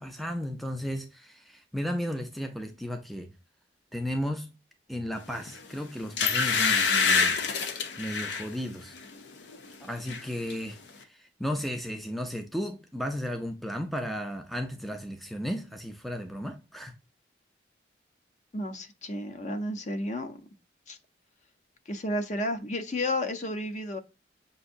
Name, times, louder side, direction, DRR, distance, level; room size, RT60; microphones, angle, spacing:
voice 1, 0.0-3.3 3.9-4.5 4.9-7.4 8.0-8.9 9.8-16.9, equal, ahead, 0.4 m, -34 dB
sound 1, 5.5-5.6 6.2-8.5 9.0-9.2 9.5-10.2 10.5-10.6, left 5 dB, 75° left, 0.7 m, -26 dB
voice 2, 18.5-20.4 20.9-21.0 21.9-24.0, left 1 dB, 40° left, 0.6 m, -32 dB
6.7 x 2.6 x 2.5 m
head